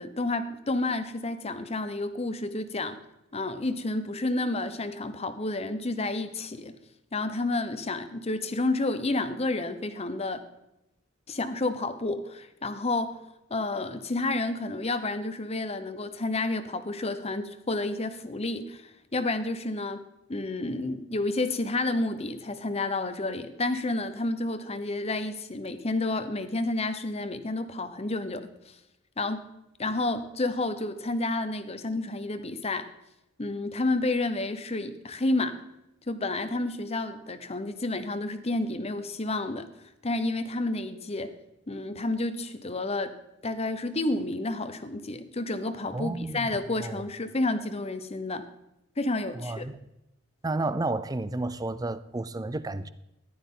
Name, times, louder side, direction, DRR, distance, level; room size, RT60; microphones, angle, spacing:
voice 1, 0.0-3.0 3.3-6.8 7.1-10.4 11.3-13.2 13.5-28.5 29.2-29.5 29.8-32.9 33.4-35.6 36.1-39.7 40.0-41.3 41.7-43.2 43.4-48.5 49.0-49.7, left 2 dB, 30° left, 0.9 m, -30 dB
voice 2, 45.9-46.5 46.8-47.0 49.4-49.8 50.4-52.9, right 2 dB, 20° right, 0.5 m, -31 dB
15.0 x 11.5 x 3.8 m
head